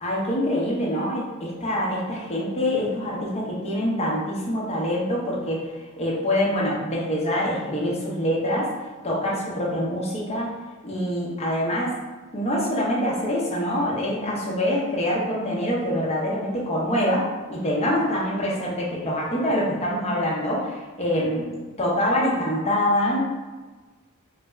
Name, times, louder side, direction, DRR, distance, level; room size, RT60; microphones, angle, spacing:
voice 1, 0.0-5.7 6.0-8.7 9.0-10.5 10.8-12.0 12.3-21.5 21.8-23.3, equal, 30° left, -4 dB, 0.8 m, -25 dB
4.0 x 2.1 x 3.4 m, 1.3 s
head